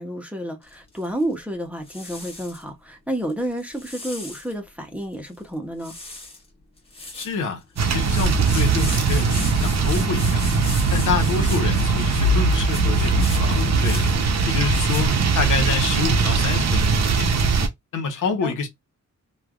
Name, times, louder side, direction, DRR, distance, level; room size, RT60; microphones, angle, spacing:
voice 1, 0.0-6.0 18.4-18.5, right 1 dB, 5° right, 0.7 m, -30 dB
sound 1, 0.6-1.4 1.8-2.6 3.3-4.5 5.0-5.1 5.3-5.5 5.8-6.4 6.8-15.1, left 2 dB, 20° left, 1.1 m, -38 dB
voice 2, 7.1-10.4 10.9-14.1 14.4-17.3 17.9-18.7, left 5 dB, 80° left, 0.9 m, -27 dB
sound 2, 7.8-17.7, right 4 dB, 60° right, 0.7 m, -20 dB
3.2 x 2.3 x 2.3 m
wide cardioid pair, 120°, 30 cm